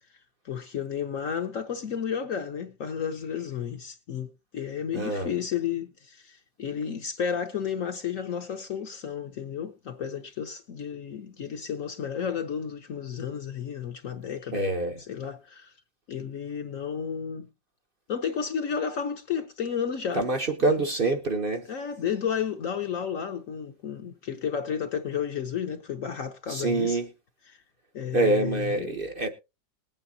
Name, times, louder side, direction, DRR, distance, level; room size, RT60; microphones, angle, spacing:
voice 1, 0.4-14.6 15.1-15.7 16.1-17.5 18.1-20.2 20.6-20.8 21.7-27.0 27.5-27.6 27.9-28.9, left 7 dB, 55° left, 1.0 m, -32 dB
voice 2, 4.9-5.3 14.5-15.0 20.1-21.7 26.5-27.1 28.1-29.3, right 2 dB, 45° right, 0.8 m, -26 dB
20.5 x 8.8 x 2.7 m
omnidirectional pair, 2.0 m